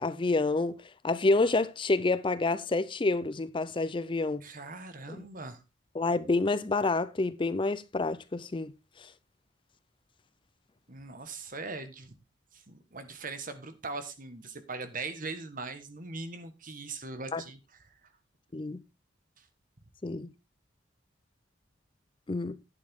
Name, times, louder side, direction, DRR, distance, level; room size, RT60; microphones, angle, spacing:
voice 1, 0.0-4.4 5.2-5.3 5.9-8.7 9.0-9.1 17.3-17.4 18.5-18.8 20.0-20.3 22.3-22.6, left 3 dB, 25° left, 0.5 m, -28 dB
voice 2, 4.4-5.6 10.9-12.1 12.5-17.6 19.4-19.5, right 3 dB, 45° right, 1.4 m, -40 dB
11.0 x 8.9 x 3.6 m
head